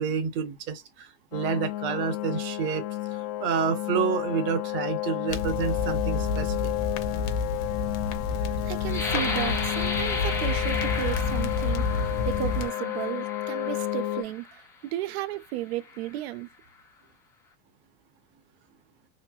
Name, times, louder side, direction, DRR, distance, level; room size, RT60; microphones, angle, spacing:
voice 1, 0.0-2.8 3.4-6.7, right 6 dB, 40° right, 0.8 m, -29 dB
sound 1, 1.3-14.2, left 15 dB, 90° left, 0.5 m, -32 dB
sound 2, 5.3-12.7, left 4 dB, 45° left, 0.7 m, -30 dB
voice 2, 8.6-16.5, right 15 dB, 85° right, 0.5 m, -34 dB
sound 3, 8.9-14.5 15.2-15.3 15.8-16.3, left 4 dB, 10° left, 0.4 m, -34 dB
3.1 x 2.7 x 2.3 m
supercardioid pair, 155°, 31 cm